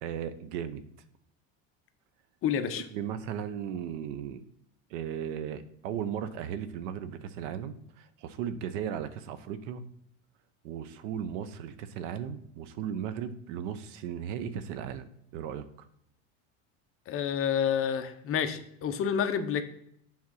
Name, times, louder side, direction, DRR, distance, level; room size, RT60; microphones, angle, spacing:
voice 1, 0.0-0.8 2.7-4.4 4.9-9.8 10.6-15.1 15.3-15.7, right 8 dB, 85° right, 13 dB, 0.8 m, -36 dB
voice 2, 2.4-2.8 17.1-19.6, left 8 dB, 40° left, 8 dB, 0.7 m, -29 dB
7.5 x 3.6 x 6.2 m, 0.72 s
cardioid pair, 135°, 36 cm